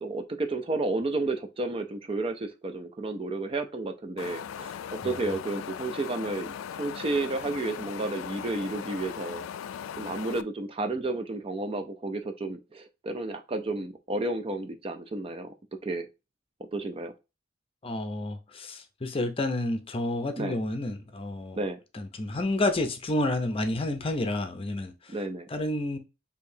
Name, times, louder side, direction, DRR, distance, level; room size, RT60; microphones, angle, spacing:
voice 1, 0.0-9.5 10.0-15.5 15.8-16.1 16.7-17.1 20.4-20.6 21.5-21.8 25.1-25.5, right 2 dB, 30° right, 0.4 m, -32 dB
Wind, 4.2-10.4, left 8 dB, 90° left, 0.3 m, -38 dB
voice 2, 5.0-5.4 17.8-21.6 21.9-25.1 25.5-26.0, left 1 dB, 30° left, 0.6 m, -30 dB
6.6 x 2.8 x 2.6 m
head